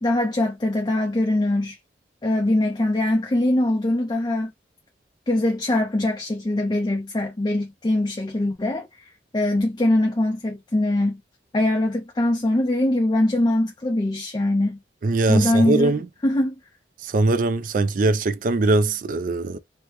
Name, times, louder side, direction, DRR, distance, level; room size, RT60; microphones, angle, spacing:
voice 1, 0.0-1.8 2.2-4.5 5.3-11.2 11.5-14.8 15.3-15.9 16.2-16.5, left 1 dB, 25° left, 0.5 m, -22 dB
voice 2, 15.0-16.1 17.0-19.6, right 2 dB, 50° right, 0.4 m, -21 dB
3.2 x 2.1 x 2.9 m
head